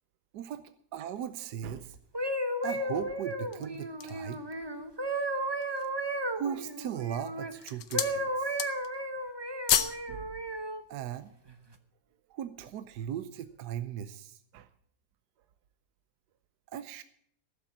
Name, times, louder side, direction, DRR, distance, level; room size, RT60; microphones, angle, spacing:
voice 1, 0.9-2.0 2.6-4.4 6.3-8.6 10.1-10.3 10.9-11.3 12.3-14.7 16.7-17.0, right 9 dB, 75° right, 12 dB, 1.2 m, -38 dB
sound 1, 2.0-7.5 7.9-10.8 11.5-11.7, right 1 dB, 20° right, 0.7 m, -34 dB
sound 2, 3.3-4.3 4.9-5.0 5.5-6.0 6.7-7.1 7.4-8.2 8.5-9.0 9.3-10.0 10.4-10.5, left 10 dB, 85° left, 1.5 m, -31 dB
15.5 x 7.1 x 8.5 m, 0.66 s
omnidirectional pair, 1.8 m